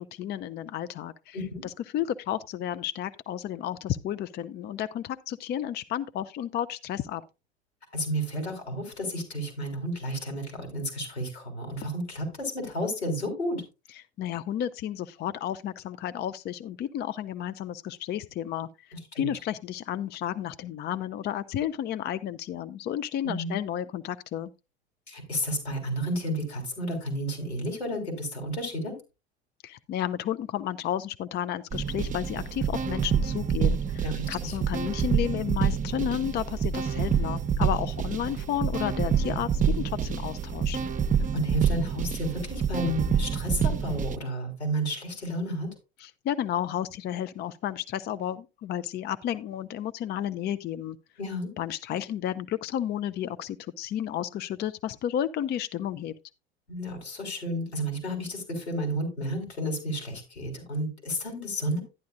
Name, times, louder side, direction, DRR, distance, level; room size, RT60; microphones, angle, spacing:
voice 1, 0.0-1.4 1.6-7.2 13.9-18.7 19.2-24.5 29.6-40.8 46.0-51.0 51.6-56.1, left 11 dB, 30° left, 0.5 m, -32 dB
voice 2, 7.9-13.6 19.1-19.3 23.2-23.6 25.1-29.0 34.0-34.5 41.3-45.7 51.2-51.5 56.7-61.8, equal, 85° left, 4.1 m, -32 dB
sound 1, 31.7-44.2, right 7 dB, 25° right, 0.8 m, -27 dB
12.0 x 10.5 x 2.5 m
figure-of-eight pair, 70°, 32 cm